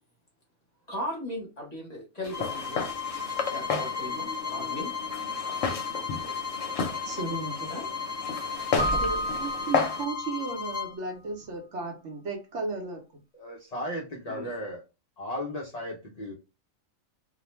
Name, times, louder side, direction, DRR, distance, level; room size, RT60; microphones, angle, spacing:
voice 1, 0.9-2.9 3.5-4.9 7.7-7.9 14.3-14.5, equal, 35° left, -1 dB, 0.9 m, -37 dB
Walk footsteps, 2.2-10.0, left 6 dB, 70° left, 0.9 m, -33 dB
sound 1, 2.3-10.9, left 6 dB, 15° left, 1.1 m, -35 dB
voice 2, 7.0-7.7 8.9-13.0, right 3 dB, 65° right, 2 dB, 0.9 m, -34 dB
Keyboard (musical), 8.8-10.6, equal, 10° right, 0.5 m, -31 dB
voice 3, 13.3-14.8 15.2-16.3, left 1 dB, 55° left, -1 dB, 0.4 m, -35 dB
2.4 x 2.1 x 3.0 m, 0.29 s
omnidirectional pair, 1.4 m